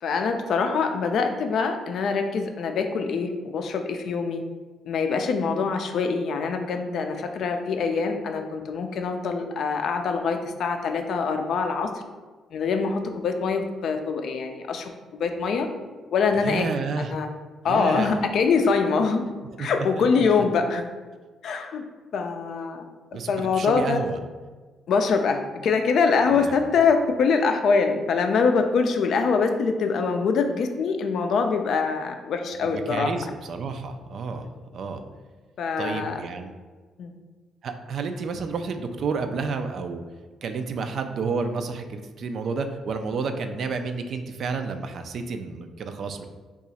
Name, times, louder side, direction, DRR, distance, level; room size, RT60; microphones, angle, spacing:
voice 1, 0.0-4.4 4.9-11.9 12.5-15.7 16.1-16.7 17.1-17.3 17.6-19.2 19.6-20.8 21.4-21.8 22.1-22.8 23.3-24.0 24.9-33.1 35.6-36.2 37.0-37.1, left 5 dB, 70° left, 5 dB, 0.4 m, -24 dB
voice 2, 16.4-17.1 17.6-18.2 19.6-19.7 20.0-20.1 23.1-24.2 26.3-26.5 32.6-34.5 34.7-35.0 35.8-36.5 37.6-40.0 40.4-46.3, right 4 dB, 60° right, 7 dB, 0.3 m, -30 dB
2.9 x 2.4 x 4.1 m, 1.3 s
cardioid pair, 90°, 0 cm